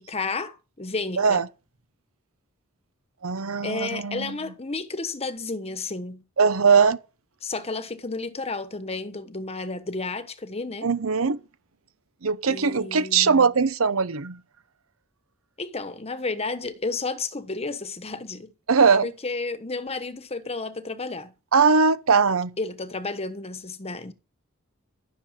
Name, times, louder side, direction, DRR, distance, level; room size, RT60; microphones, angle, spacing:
voice 1, 0.0-1.4 3.6-6.3 7.4-10.9 12.5-13.5 15.6-18.5 19.0-21.3 22.6-24.1, left 3 dB, 30° left, 1.2 m, -32 dB
voice 2, 3.2-4.4 6.4-7.0 10.8-11.4 12.2-14.4 18.7-19.1 21.5-22.5, right 5 dB, 75° right, 0.9 m, -20 dB
13.0 x 6.7 x 7.4 m
head